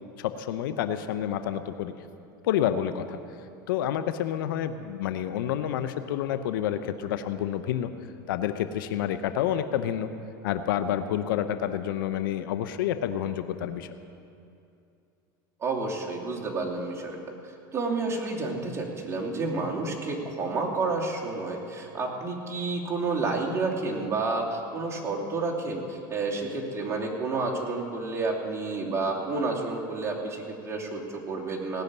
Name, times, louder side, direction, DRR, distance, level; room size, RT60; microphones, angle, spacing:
voice 1, 0.2-1.9 2.4-3.2 3.7-7.9 8.3-10.1 10.4-13.9, left 10 dB, 80° left, 10 dB, 0.8 m, -29 dB
voice 2, 15.6-17.2 17.7-31.8, right 3 dB, 25° right, -2 dB, 2.8 m, -30 dB
18.0 x 6.5 x 9.6 m, 2.6 s
supercardioid pair, 110°, 11 cm